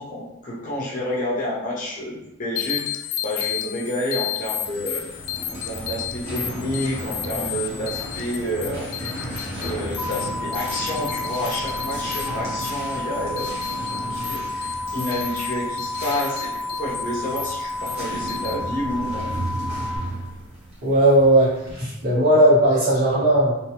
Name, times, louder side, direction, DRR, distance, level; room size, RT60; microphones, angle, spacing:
voice 1, 0.0-2.9 3.2-5.0 5.5-8.9 9.6-13.8 14.1-19.3, equal, 45° left, -5 dB, 0.7 m, -29 dB
sound 1, 2.6-18.5, left 11 dB, 75° left, 0.3 m, -33 dB
sound 2, 4.5-21.9, right 1 dB, 30° right, 0.9 m, -35 dB
sound 3, 10.0-20.0, left 2 dB, 10° left, 0.8 m, -31 dB
voice 2, 20.8-23.5, right 1 dB, 55° right, -9 dB, 1.5 m, -17 dB
2.8 x 2.2 x 2.9 m, 0.95 s
head